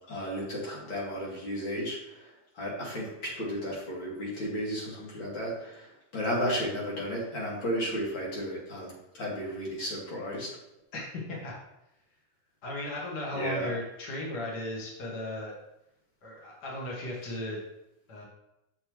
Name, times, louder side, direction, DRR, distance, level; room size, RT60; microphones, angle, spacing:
voice 1, 0.1-2.0 2.6-5.9 6.1-10.5 13.3-13.7, equal, 40° left, -5 dB, 2.1 m, -33 dB
voice 2, 10.9-11.5 12.6-15.5 16.2-17.6 18.1-18.2, left 1 dB, 80° left, -3 dB, 0.9 m, -36 dB
6.8 x 5.3 x 3.1 m, 0.88 s
omnidirectional pair, 3.9 m